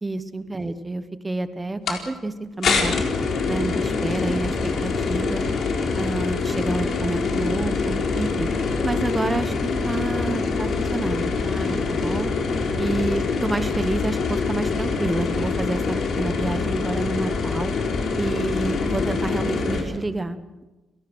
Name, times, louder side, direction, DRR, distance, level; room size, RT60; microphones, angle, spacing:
voice 1, 0.0-3.0 3.5-5.4 5.9-8.5 8.8-12.3 12.8-17.7 18.2-20.7, right 2 dB, 15° right, 11 dB, 1.2 m, -29 dB
sound 1, 1.9-2.0 2.6-19.8, left 4 dB, 50° left, 4.1 m, -25 dB
29.5 x 18.5 x 6.3 m, 1.1 s
cardioid pair, 170°, 0 cm